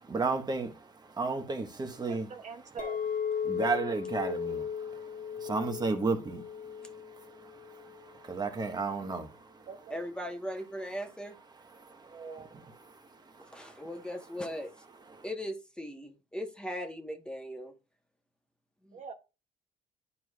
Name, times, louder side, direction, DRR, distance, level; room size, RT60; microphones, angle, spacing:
voice 1, 0.0-2.3 3.4-9.7 11.6-13.9 15.1-15.2, right 3 dB, 25° right, 1.3 m, -35 dB
voice 2, 2.0-3.0 9.7-10.0 12.1-12.5 18.9-19.1, right 5 dB, 45° right, 0.8 m, -44 dB
Chink clink, 2.8-8.0, left 7 dB, 55° left, 1.8 m, -36 dB
voice 3, 9.9-11.4 13.5-14.7 15.2-17.7 18.8-19.0, equal, 5° left, 1.3 m, -38 dB
11.0 x 4.7 x 2.4 m
cardioid pair, 110°, 17 cm